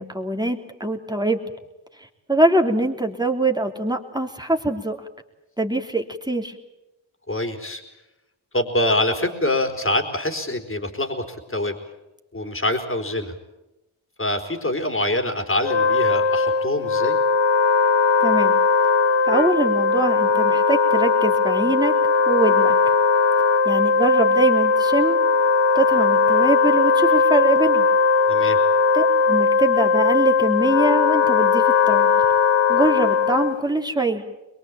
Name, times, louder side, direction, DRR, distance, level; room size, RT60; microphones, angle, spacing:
voice 1, 0.0-1.4 2.3-5.0 5.6-6.5 18.2-18.5 19.2-22.0 22.3-22.9 23.6-25.2 25.7-27.9 28.9-32.2 32.7-34.2, right 2 dB, 10° right, 3 dB, 3.3 m, -23 dB
voice 2, 7.3-7.8 8.5-11.7 12.3-13.3 14.2-17.2 28.3-28.6, left 1 dB, 25° left, 5 dB, 4.2 m, -25 dB
Wind instrument woodwind instrument, 15.5-33.7, left 4 dB, 70° left, 1.0 m, -18 dB
23.0 x 22.5 x 8.8 m, 0.96 s
cardioid pair, 55°, 47 cm